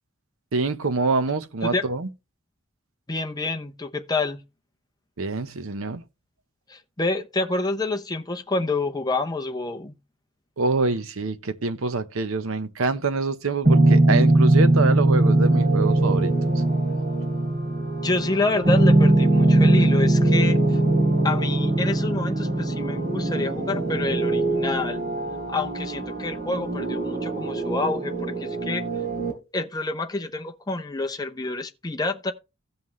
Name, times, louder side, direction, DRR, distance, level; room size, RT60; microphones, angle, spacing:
voice 1, 0.5-2.1 5.2-6.0 10.6-16.6, right 3 dB, 75° right, 0.9 m, -26 dB
voice 2, 3.1-4.4 6.7-9.9 18.0-20.8 21.2-25.0 25.5-28.8 29.5-32.3, left 2 dB, 20° left, 0.7 m, -28 dB
sound 1, 13.6-29.3, right 2 dB, 45° right, 3.1 m, -21 dB
15.5 x 5.6 x 3.2 m
head